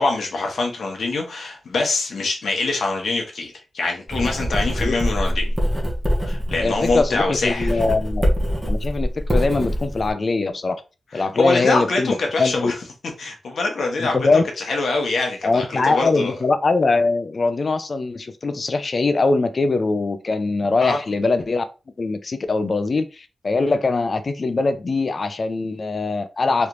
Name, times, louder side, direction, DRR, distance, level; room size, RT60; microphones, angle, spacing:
voice 1, 0.0-5.5 6.2-7.8 11.1-12.7 13.2-14.2 14.7-16.3 20.8-21.0, left 3 dB, 70° left, 0.9 m, -24 dB
Writing, 4.1-10.1, equal, 10° right, 0.8 m, -23 dB
voice 2, 6.6-8.2 8.7-10.8 11.1-12.1 12.4-12.7 14.0-14.4 15.4-21.6 22.0-26.7, left 3 dB, 40° left, 0.3 m, -22 dB
3.2 x 2.9 x 2.4 m
wide cardioid pair, 145°, 0 cm